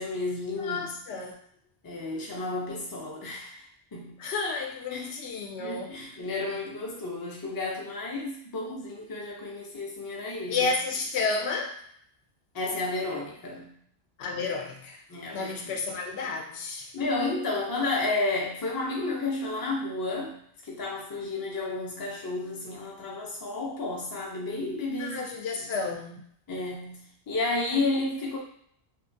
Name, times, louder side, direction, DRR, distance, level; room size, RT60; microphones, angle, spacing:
voice 1, 0.0-1.0 1.8-4.2 4.9-5.1 5.6-10.7 12.5-13.7 15.1-15.7 16.9-25.3 25.6-25.9 26.5-28.4, left 2 dB, 30° left, -2 dB, 0.4 m, -32 dB
voice 2, 0.6-1.4 4.2-6.0 10.5-11.8 14.2-15.0 15.3-16.9 25.0-26.2, left 4 dB, 90° left, 1 dB, 0.9 m, -31 dB
2.7 x 2.4 x 2.5 m, 0.66 s
omnidirectional pair, 1.1 m